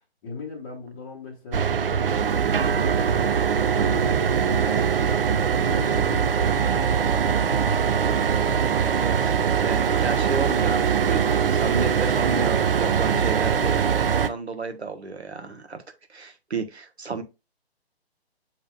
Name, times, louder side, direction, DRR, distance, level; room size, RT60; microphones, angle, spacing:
voice 1, 0.2-2.4 2.8-7.7, left 2 dB, 15° left, 0.7 m, -38 dB
sound 1, 1.5-14.3, right 7 dB, 60° right, 0.5 m, -22 dB
voice 2, 8.7-15.8 16.1-17.2, right 4 dB, 80° right, 1.0 m, -32 dB
7.4 x 3.1 x 2.2 m
figure-of-eight pair, 130°, 32 cm